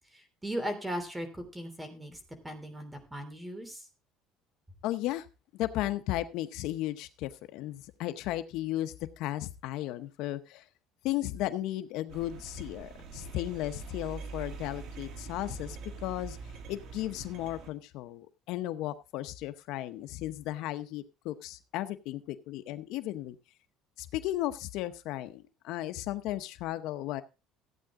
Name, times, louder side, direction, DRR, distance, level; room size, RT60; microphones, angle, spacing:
voice 1, 0.1-2.2 2.4-3.8, equal, 10° right, 8 dB, 3.0 m, -38 dB
voice 2, 4.8-5.3 5.5-10.7 11.0-16.4 16.7-23.3 24.0-27.2, left 14 dB, 70° left, 11 dB, 0.8 m, -35 dB
sound 1, 12.1-17.7, right 4 dB, 55° right, 2.3 m, -44 dB
15.0 x 8.9 x 3.6 m, 0.29 s
cardioid pair, 140°, 0 cm